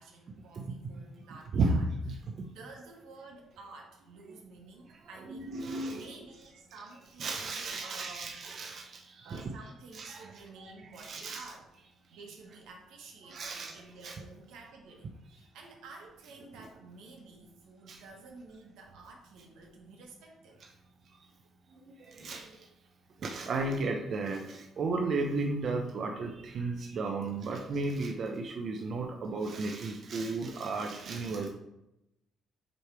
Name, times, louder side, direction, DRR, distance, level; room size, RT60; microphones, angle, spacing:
voice 1, 0.0-1.9 2.1-2.2 2.5-8.4 9.2-11.7 12.1-20.6, right 3 dB, 85° right, 0 dB, 1.4 m, -51 dB
voice 2, 1.5-2.5 4.9-5.0 5.3-6.1 7.2-9.5 9.9-10.3 10.6-10.7 11.0-11.5 13.2-13.8 14.0-14.2 17.9-18.0 22.0-22.7 23.2-31.5, right 3 dB, 45° right, 2 dB, 0.7 m, -34 dB
7.6 x 3.3 x 4.7 m, 0.89 s
cardioid pair, 125°, 0 cm